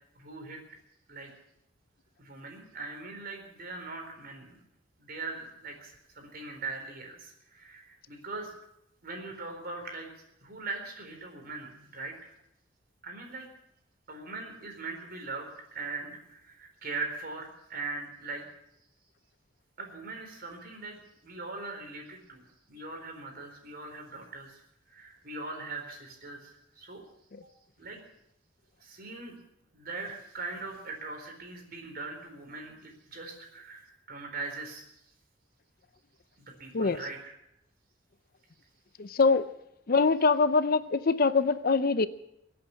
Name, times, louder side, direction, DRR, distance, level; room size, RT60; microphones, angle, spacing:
voice 1, 0.1-0.6 1.1-1.3 2.2-4.6 5.0-8.5 9.0-12.3 13.0-13.5 14.1-18.5 19.8-22.4 22.7-24.6 24.9-27.0 27.8-28.0 28.8-29.4 29.7-34.8 36.4-37.3, right 3 dB, 50° right, 3 dB, 4.1 m, -41 dB
voice 2, 39.0-39.5 39.9-42.1, left 4 dB, 50° left, 13 dB, 0.6 m, -24 dB
23.0 x 8.6 x 7.3 m, 0.80 s
head